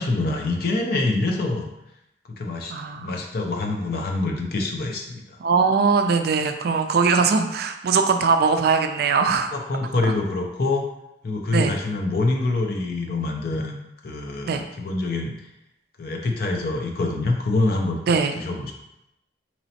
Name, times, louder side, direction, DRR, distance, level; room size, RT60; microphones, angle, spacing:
voice 1, 0.0-1.7 2.3-2.7 3.0-5.2 9.5-10.9 11.2-15.4 16.0-18.7, left 2 dB, 55° left, 2 dB, 0.5 m, -25 dB
voice 2, 2.7-3.1 5.4-9.5 11.5-11.8 14.4-14.6 18.1-18.4, right 5 dB, 55° right, 6 dB, 0.3 m, -21 dB
4.1 x 3.0 x 2.8 m, 0.87 s
head